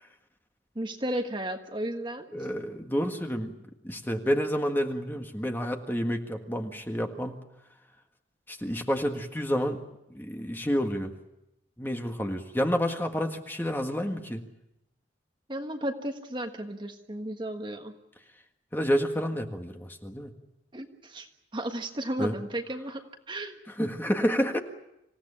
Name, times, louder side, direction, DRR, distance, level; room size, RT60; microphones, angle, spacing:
voice 1, 0.7-2.3 15.5-18.0 20.7-21.3 21.5-23.6, right 1 dB, 25° right, 5 dB, 1.5 m, -34 dB
voice 2, 2.3-3.5 3.8-7.4 8.5-9.8 10.1-11.1 11.8-14.4 18.7-20.3 22.2-22.3 23.8-24.6, equal, 10° left, 4 dB, 1.7 m, -29 dB
26.5 x 16.5 x 10.0 m, 0.89 s
head